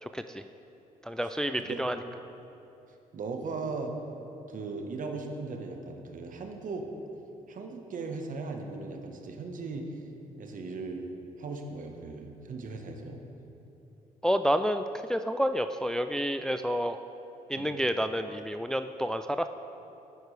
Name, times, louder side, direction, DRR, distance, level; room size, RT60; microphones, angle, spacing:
voice 1, 0.0-0.4 1.0-2.0 14.2-14.8 15.1-17.0 17.5-19.5, equal, 5° left, 9 dB, 0.3 m, -29 dB
voice 2, 3.1-3.9 4.5-6.9 7.5-9.9 10.4-11.1 11.4-13.2 17.6-17.8, right 3 dB, 55° right, 4 dB, 1.2 m, -38 dB
10.5 x 9.4 x 3.3 m, 2.9 s
supercardioid pair, 60°, 16 cm